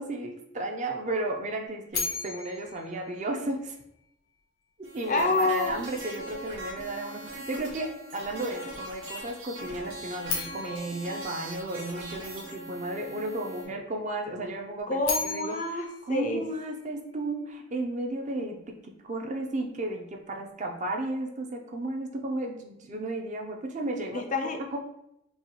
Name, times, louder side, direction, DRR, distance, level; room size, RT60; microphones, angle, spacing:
voice 1, 0.0-3.8 4.8-15.6 16.0-24.2 24.7-24.8, right 2 dB, 35° right, 2 dB, 0.5 m, -34 dB
sound 1, 1.9-4.0 10.2-12.4 14.8-17.2, left 5 dB, 85° left, 0.9 m, -37 dB
sound 2, 4.8-13.6, right 1 dB, 80° right, 1.2 m, -41 dB
voice 2, 5.1-5.8 14.9-16.4 24.1-24.6, left 2 dB, 40° left, 5 dB, 0.4 m, -27 dB
5.4 x 2.3 x 2.9 m, 0.81 s
head